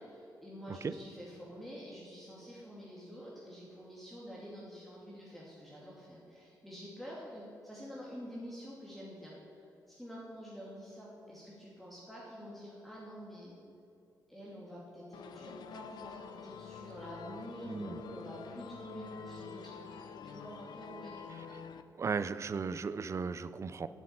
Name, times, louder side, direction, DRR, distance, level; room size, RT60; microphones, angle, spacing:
voice 1, 0.0-13.6 14.3-21.3, equal, ahead, -6 dB, 2.4 m, -48 dB
sound 1, 15.1-21.8, left 7 dB, 75° left, 0.6 m, -48 dB
voice 2, 17.7-18.0 22.0-23.9, right 5 dB, 40° right, 14 dB, 0.5 m, -36 dB
8.5 x 7.7 x 8.6 m, 2.7 s
cardioid pair, 85°, 7 cm